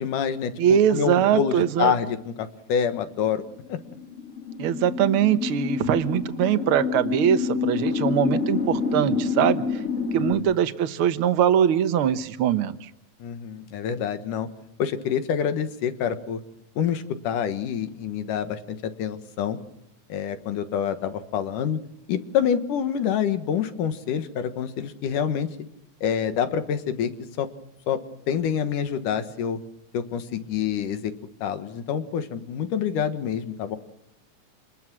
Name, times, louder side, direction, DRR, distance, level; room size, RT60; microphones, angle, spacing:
voice 1, 0.0-3.8 10.1-10.6 13.2-14.5 14.8-16.4 16.8-19.6 20.1-21.8 22.1-25.5 26.0-27.1 27.4-27.5 27.9-28.0 28.3-29.6 29.9-31.1 31.4-33.8, left 8 dB, 90° left, 10 dB, 3.1 m, -27 dB
voice 2, 0.6-1.9 4.6-9.6 10.1-12.9, right 9 dB, 60° right, 11 dB, 1.5 m, -22 dB
sound 1, 3.6-10.3, left 5 dB, 25° left, 2.5 m, -27 dB
28.0 x 21.0 x 6.2 m, 0.75 s
omnidirectional pair, 3.6 m